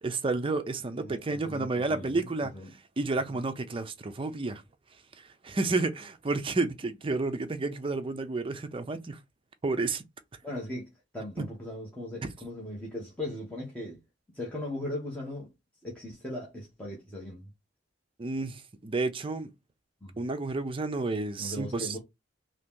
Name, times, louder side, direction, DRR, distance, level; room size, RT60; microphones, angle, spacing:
voice 1, 0.0-2.5 3.0-4.6 5.4-9.2 9.6-10.0 11.4-11.5 18.2-19.5 20.2-22.0, right 3 dB, 30° right, 0.5 m, -31 dB
voice 2, 1.0-2.3 2.5-2.7 3.3-3.4 10.4-14.0 14.3-15.5 15.8-17.5 20.0-20.1 21.4-22.0, left 1 dB, 5° left, 0.9 m, -38 dB
2.9 x 2.8 x 3.6 m
head